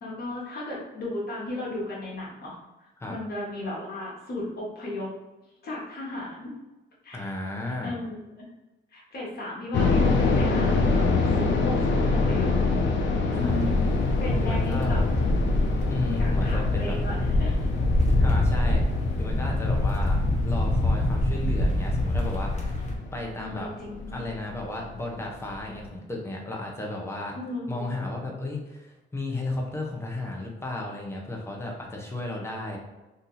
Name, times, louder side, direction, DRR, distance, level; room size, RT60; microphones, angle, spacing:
voice 1, 0.0-5.1 5.6-6.5 7.0-7.3 7.7-8.2 8.9-11.0 11.3-12.5 13.4-15.0 16.2-17.6 23.2-24.3 27.3-27.9, left 1 dB, 55° left, -4 dB, 1.3 m, -35 dB
voice 2, 7.1-8.0 13.3-13.6 14.4-15.1 15.9-17.0 18.2-18.8 19.2-20.2 20.4-22.8 23.1-23.7 24.1-27.4 27.7-32.8, left 2 dB, 15° left, -1 dB, 0.9 m, -34 dB
sound 1, 9.7-24.6 24.9-25.0 25.6-25.9, left 3 dB, 70° left, 0.6 m, -26 dB
sound 2, 13.4-22.9, left 1 dB, 35° left, 0.9 m, -25 dB
2.8 x 2.7 x 3.9 m, 1.1 s
cardioid pair, 90°, 20 cm